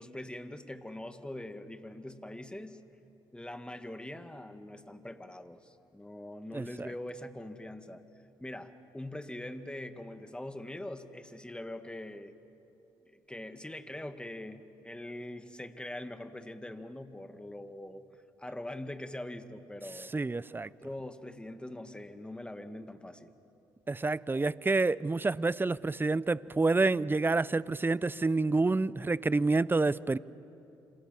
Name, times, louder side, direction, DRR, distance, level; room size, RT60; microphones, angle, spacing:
voice 1, 0.0-2.8 3.3-8.0 8.4-12.3 13.0-18.0 18.4-20.1 20.6-23.3, left 1 dB, 10° left, 2.0 m, -43 dB
voice 2, 6.5-6.9 20.1-20.7 23.9-30.2, right 3 dB, 20° right, 0.7 m, -28 dB
27.0 x 26.5 x 7.6 m
hypercardioid pair, 50°, 11 cm